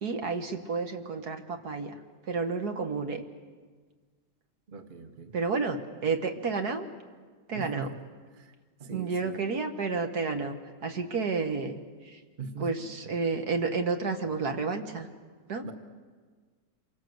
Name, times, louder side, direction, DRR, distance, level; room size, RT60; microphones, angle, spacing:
voice 1, 0.0-1.9 2.3-3.2 5.3-6.9 7.5-7.9 8.9-10.5 10.8-11.8 12.1-12.2 12.6-15.1 15.5-15.6, right 4 dB, 65° right, 6 dB, 2.1 m, -30 dB
voice 2, 4.7-5.3 7.5-8.0 8.3-8.5 8.8-9.5 12.4-12.9 15.6-15.7, right 4 dB, 30° right, 7 dB, 1.4 m, -41 dB
27.5 x 23.5 x 8.0 m, 1.5 s
omnidirectional pair, 1.8 m